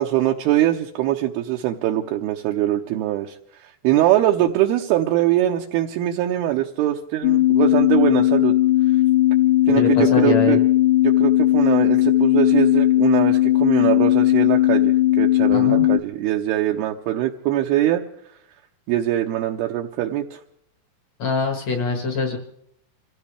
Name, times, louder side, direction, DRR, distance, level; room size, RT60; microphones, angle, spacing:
voice 1, 0.0-3.4 3.6-8.5 9.7-10.6 11.0-18.0 18.9-20.4 22.3-22.4, right 13 dB, 80° right, 1 dB, 2.6 m, -22 dB
sound 1, 7.2-16.0, left 15 dB, 80° left, 2.8 m, -17 dB
voice 2, 9.8-10.6 15.5-15.8 21.2-22.4, left 3 dB, 55° left, 4 dB, 2.1 m, -24 dB
26.5 x 15.5 x 3.4 m, 0.70 s
omnidirectional pair, 4.8 m